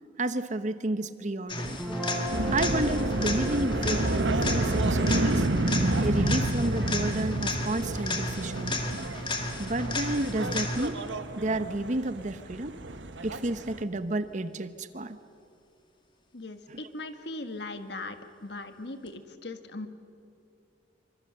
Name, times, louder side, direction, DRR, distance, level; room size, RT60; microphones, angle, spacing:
voice 1, 0.2-1.8 2.5-5.5 6.0-8.8 9.6-11.0 11.3-12.8 13.2-15.2 16.7-16.8, right 2 dB, 40° right, 11 dB, 0.9 m, -31 dB
sound 1, 1.5-11.1 19.1-19.2, left 2 dB, 25° left, 2.0 m, -34 dB
Guitar, 1.7-8.0, right 1 dB, ahead, 5.7 m, -39 dB
sound 2, 2.3-13.8, right 1 dB, 85° right, 1.4 m, -29 dB
voice 2, 16.3-19.9, left 2 dB, 65° left, 8 dB, 1.6 m, -39 dB
27.5 x 25.0 x 6.7 m, 2.6 s
head